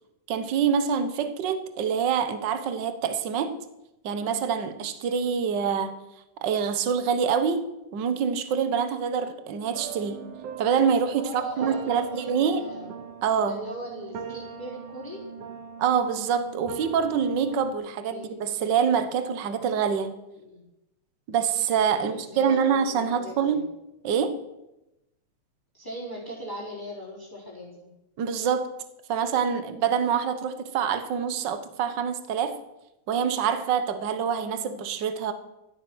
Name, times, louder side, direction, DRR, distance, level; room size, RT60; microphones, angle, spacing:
voice 1, 0.3-3.5 4.0-5.9 6.4-7.6 7.9-10.2 10.6-12.6 13.2-13.6 15.8-20.1 21.3-23.7 24.0-24.4 28.2-28.7 29.1-32.6 33.1-35.3, right 7 dB, 50° right, 1.4 m, -25 dB
sound 1, 9.7-17.7, right 7 dB, 85° right, 2.9 m, -40 dB
voice 2, 11.2-12.9 13.4-15.2 18.1-18.3 20.3-20.6 22.0-23.6 25.7-27.7, equal, 5° left, 3.8 m, -39 dB
15.5 x 12.5 x 6.2 m
omnidirectional pair, 3.3 m